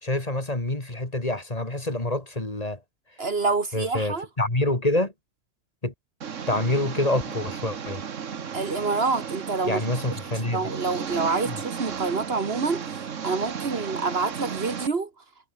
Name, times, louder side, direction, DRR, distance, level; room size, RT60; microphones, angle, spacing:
voice 1, 0.0-2.8 3.7-5.1 5.8-5.9 6.5-8.0 9.6-10.7 11.5-11.6, left 1 dB, 30° left, 3.0 m, -26 dB
voice 2, 3.2-4.3 8.5-9.8 10.5-12.8 13.2-15.1, right 4 dB, 55° right, 1.8 m, -27 dB
Engine, 6.2-14.9, right 7 dB, 80° right, 1.7 m, -34 dB
omnidirectional pair, 1.3 m